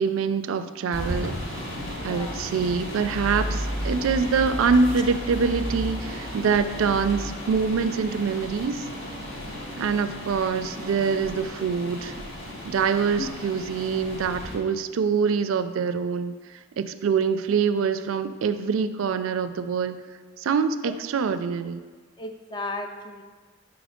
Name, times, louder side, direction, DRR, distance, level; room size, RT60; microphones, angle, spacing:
voice 1, 0.0-1.4 2.0-8.9 9.8-12.1 12.6-16.3 16.8-20.0 20.4-21.8, right 5 dB, 90° right, 11 dB, 0.4 m, -25 dB
sound 1, 0.9-14.6, equal, 85° left, 1.7 m, -34 dB
voice 2, 2.0-2.4 13.2-13.3 22.2-23.2, left 2 dB, 20° left, 5 dB, 0.4 m, -34 dB
5.1 x 4.8 x 5.0 m, 1.4 s
head